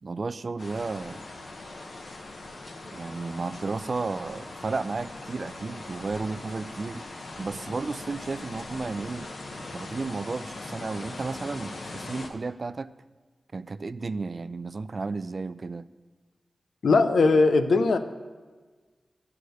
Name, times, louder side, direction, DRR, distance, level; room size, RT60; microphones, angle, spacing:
voice 1, 0.0-1.2 2.9-7.1 7.4-9.3 9.7-12.9 13.5-15.9, right 3 dB, 45° right, 15 dB, 0.3 m, -33 dB
sound 1, 0.6-12.3, left 2 dB, 55° left, 1.1 m, -41 dB
voice 2, 16.8-18.0, left 3 dB, 90° left, 9 dB, 0.6 m, -19 dB
12.0 x 4.9 x 7.9 m, 1.4 s
wide cardioid pair, 115°, 0 cm